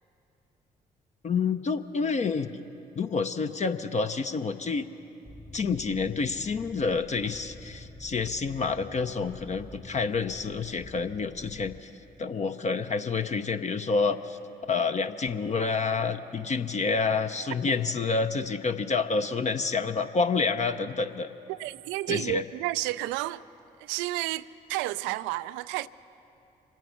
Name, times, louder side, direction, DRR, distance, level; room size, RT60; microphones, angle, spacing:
voice 1, 1.2-2.6 3.0-4.8 5.5-11.9 12.2-14.4 14.7-21.3 22.1-22.4, left 4 dB, 35° left, 0.7 m, -28 dB
sound 1, 5.2-11.8, equal, 5° left, 1.0 m, -48 dB
voice 2, 21.5-23.4 23.8-25.9, right 17 dB, 70° right, 0.4 m, -31 dB
26.0 x 9.2 x 5.9 m
figure-of-eight pair, 45°, 20 cm